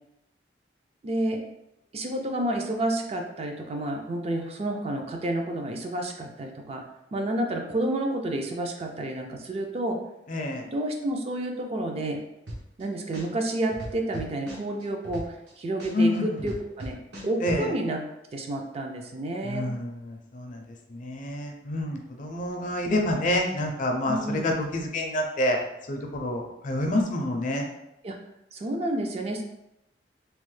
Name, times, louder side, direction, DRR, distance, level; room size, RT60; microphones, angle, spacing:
voice 1, 1.0-1.4 1.9-6.8 7.1-10.0 10.7-12.2 12.8-15.3 15.6-17.0 17.2-18.0 18.3-19.7 24.1-24.5 28.0-28.1 28.5-29.4, right 1 dB, 35° right, 2 dB, 0.4 m, -30 dB
voice 2, 10.3-10.6 15.9-16.5 17.4-17.7 19.4-20.6 20.9-25.6 25.9-27.7, left 1 dB, 45° left, 2 dB, 0.5 m, -28 dB
sound 1, 12.5-12.8 13.1-15.5 15.8-17.6, equal, 75° right, 0.9 m, -37 dB
3.0 x 2.0 x 3.1 m, 0.86 s
head